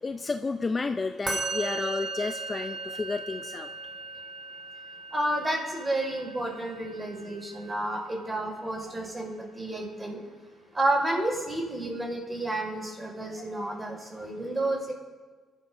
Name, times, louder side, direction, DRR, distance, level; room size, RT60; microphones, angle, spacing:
voice 1, 0.0-3.7, left 3 dB, 30° left, 7 dB, 0.5 m, -31 dB
Musical instrument, 1.3-8.5, right 3 dB, 40° right, 3.4 m, -38 dB
voice 2, 5.1-10.2 10.7-14.9, right 1 dB, 20° right, 0 dB, 5.0 m, -30 dB
23.5 x 12.5 x 2.7 m, 1.5 s
cardioid pair, 90°, 0 cm